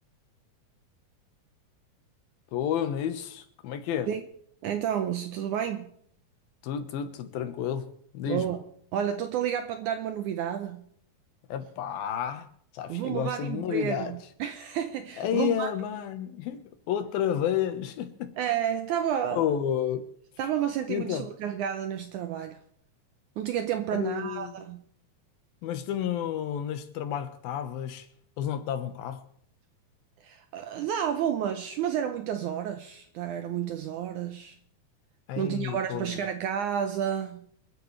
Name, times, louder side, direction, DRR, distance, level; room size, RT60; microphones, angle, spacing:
voice 1, 2.5-4.1 6.6-7.9 8.1-8.4 11.5-12.5 12.7-14.1 15.2-18.3 19.3-20.1 20.9-21.2 23.9-24.6 25.6-28.1 28.4-29.2 35.3-36.2, left 9 dB, 80° left, 3.1 m, -31 dB
voice 2, 4.6-5.9 8.3-8.6 8.9-10.9 12.9-15.7 18.4-19.5 20.4-22.6 23.4-24.8 30.2-34.6 35.4-37.5, right 9 dB, 75° right, 1.9 m, -31 dB
27.5 x 9.9 x 3.3 m
omnidirectional pair, 4.1 m